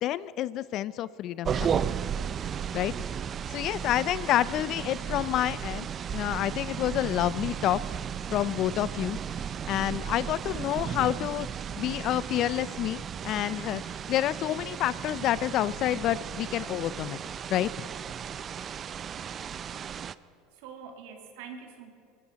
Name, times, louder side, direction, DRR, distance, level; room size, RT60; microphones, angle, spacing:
voice 1, 0.0-1.8 2.7-2.9 3.5-7.8 8.3-9.2 9.7-11.5 11.8-13.8 14.1-17.2 17.5-17.9, left 13 dB, 55° left, 18 dB, 0.4 m, -28 dB
sound 1, 1.5-20.2, right 8 dB, 35° right, 0.4 m, -35 dB
voice 2, 20.1-21.9, right 6 dB, 80° right, 4 dB, 2.0 m, -46 dB
19.0 x 15.5 x 4.0 m, 2.5 s
supercardioid pair, 110°, 0 cm